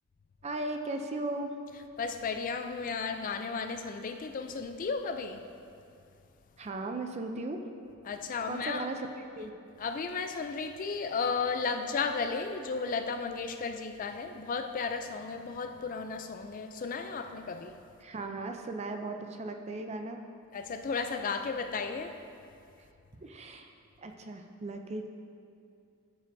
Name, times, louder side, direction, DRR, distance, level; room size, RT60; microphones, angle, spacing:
voice 1, 0.4-1.5 6.6-7.6 8.5-9.1 9.4-9.5 18.0-20.2 23.2-23.7 24.0-25.1, right 2 dB, 30° right, 0.5 m, -37 dB
voice 2, 2.0-5.4 8.0-8.9 9.8-17.8 20.5-22.2, left 5 dB, 40° left, 0.3 m, -34 dB
14.0 x 6.6 x 2.6 m
head